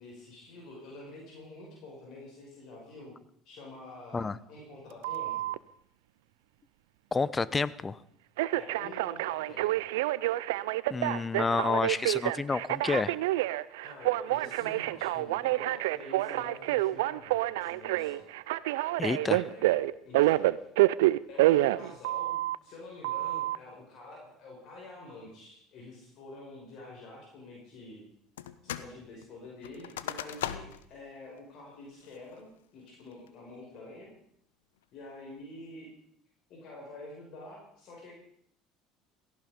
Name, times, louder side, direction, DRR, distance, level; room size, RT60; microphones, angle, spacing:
voice 1, 0.0-3.2 3.4-5.5 8.5-9.9 13.8-18.2 19.1-20.6 21.3-28.0 28.6-34.1 34.9-35.9 36.5-38.1, left 2 dB, 60° left, -2 dB, 6.1 m, -48 dB
Telephone, 5.0-5.6 8.4-22.6 23.0-23.6, right 17 dB, 75° right, 0.6 m, -28 dB
voice 2, 7.1-8.0 10.9-13.1 19.0-19.4, left 4 dB, 25° left, 19 dB, 0.9 m, -29 dB
sound 1, 28.4-28.9 29.2-30.9 31.4-31.5 32.0-32.4 32.9-33.3, left 11 dB, 80° left, 0.9 m, -39 dB
17.5 x 15.5 x 5.3 m, 0.69 s
hypercardioid pair, 70°, 0 cm